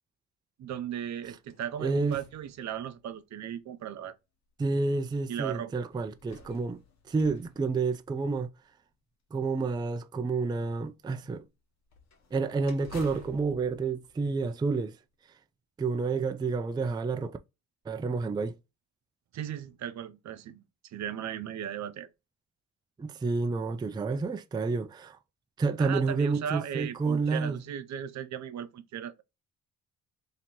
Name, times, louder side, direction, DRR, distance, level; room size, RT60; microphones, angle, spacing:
voice 1, 0.6-4.2 5.3-5.8 19.3-20.6 20.9-22.1 25.8-29.1, right 9 dB, 65° right, 0.7 m, -36 dB
sound 1, 1.2-3.2 4.0-4.1 5.9-8.5 11.9-14.9, left 5 dB, 65° left, 1.1 m, -53 dB
voice 2, 1.8-2.2 4.6-6.8 7.1-8.5 9.3-11.4 12.3-15.0 15.8-17.4 17.9-18.5 23.0-25.2 25.6-27.6, right 4 dB, 15° right, 0.4 m, -29 dB
2.9 x 2.9 x 4.2 m
cardioid pair, 90°, 30 cm